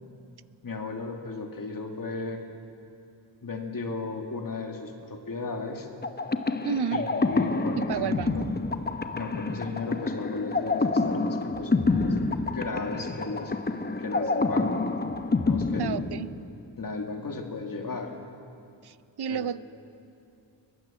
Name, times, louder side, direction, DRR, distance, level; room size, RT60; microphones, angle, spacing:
voice 1, 0.6-2.4 3.4-5.9 6.9-8.5 9.1-12.2 12.5-13.6 14.0-14.9 15.4-16.0 16.8-18.2 19.3-19.5, left 4 dB, 45° left, 2 dB, 2.5 m, -35 dB
sound 1, 6.0-16.7, left 3 dB, 20° left, 0.9 m, -28 dB
voice 2, 6.6-7.1 7.8-8.5 15.8-16.3 18.8-19.6, right 8 dB, 55° right, 15 dB, 0.7 m, -31 dB
22.5 x 22.0 x 7.6 m, 2.5 s
wide cardioid pair, 110°, 47 cm